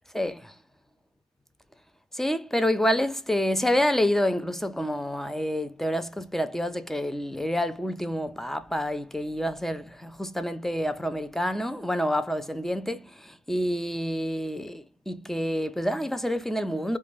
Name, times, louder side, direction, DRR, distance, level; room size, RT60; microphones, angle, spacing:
voice 1, 0.1-0.5 2.1-17.0, equal, ahead, 0.3 m, -28 dB
2.5 x 2.2 x 3.1 m
cardioid pair, 90°, 30 cm